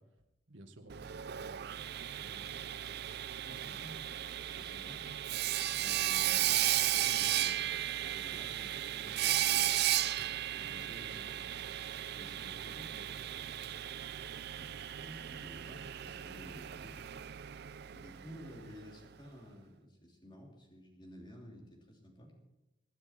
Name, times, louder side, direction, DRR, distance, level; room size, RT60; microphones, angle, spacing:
voice 1, 0.0-2.8, right 1 dB, 75° right, 5 dB, 1.8 m, -56 dB
Sawing, 0.9-18.7, right 12 dB, 55° right, 0.4 m, -35 dB
voice 2, 3.4-5.4 5.8-9.8 10.5-13.7 14.3-17.0 17.9-22.3, equal, 25° left, 0 dB, 3.1 m, -53 dB
24.5 x 9.6 x 4.5 m, 0.99 s
head